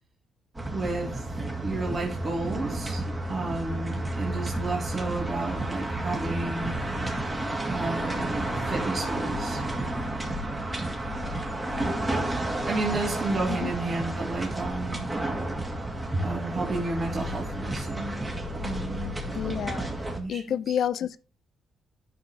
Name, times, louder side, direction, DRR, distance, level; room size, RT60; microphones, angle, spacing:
sound 1, 0.6-20.2, right 1 dB, 20° right, 2.3 m, -31 dB
voice 1, 0.7-1.2 1.6-6.8 7.7-9.6 12.6-15.1 16.2-18.2 18.5-19.1 20.2-20.4, right 3 dB, 35° right, 1.9 m, -32 dB
voice 2, 19.3-19.9 20.3-21.2, left 9 dB, 65° left, 0.6 m, -29 dB
12.0 x 5.2 x 3.2 m
cardioid pair, 95°, 0 cm